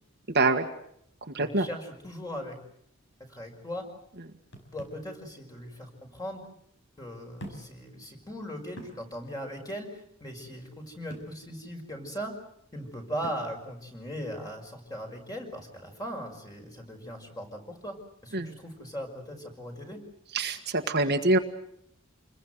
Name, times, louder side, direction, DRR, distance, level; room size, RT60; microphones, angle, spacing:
voice 1, 0.3-0.7 1.3-1.7 18.3-18.5 20.3-21.4, right 2 dB, 55° right, 5 dB, 1.7 m, -24 dB
voice 2, 1.4-2.6 3.3-3.9 4.7-6.4 7.0-12.3 12.7-18.0 18.2-20.0, equal, 20° left, 3 dB, 5.8 m, -39 dB
sound 1, 4.5-5.1 6.2-6.3 7.4-7.8 8.2-8.3 8.8-9.0 11.1-11.4 13.2-13.5, equal, 60° left, 5.8 m, -44 dB
28.0 x 21.5 x 8.0 m, 0.72 s
head